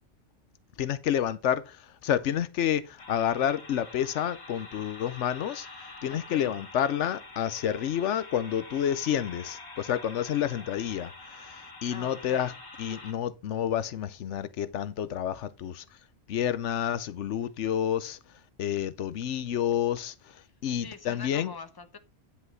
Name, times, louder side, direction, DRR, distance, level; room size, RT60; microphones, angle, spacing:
voice 1, 0.8-5.7 6.0-11.1 11.4-12.5 12.8-15.8 16.3-18.2 18.6-20.1 20.6-21.5, left 10 dB, 85° left, 1.0 m, -29 dB
sound 1, 3.0-13.1, left 2 dB, 70° left, 2.5 m, -46 dB
voice 2, 6.1-6.5 11.9-12.5 20.4-20.5 20.8-22.0, left 5 dB, 20° left, 0.9 m, -44 dB
10.0 x 5.7 x 4.5 m
omnidirectional pair, 1.2 m